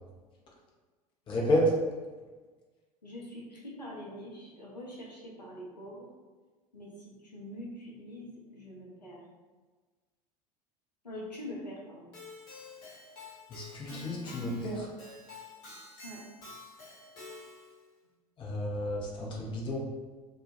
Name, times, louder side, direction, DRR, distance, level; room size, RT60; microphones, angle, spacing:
voice 1, 1.3-1.7 13.5-14.9 18.4-19.8, equal, 25° left, -3 dB, 0.6 m, -30 dB
voice 2, 3.0-6.1 6.7-9.2 11.0-12.1 16.0-16.2, equal, 85° left, -3 dB, 0.5 m, -44 dB
Keyboard (musical), 12.1-17.8, left 2 dB, 45° left, 0.9 m, -48 dB
2.1 x 2.1 x 2.7 m, 1.3 s
figure-of-eight pair, 75°, 21 cm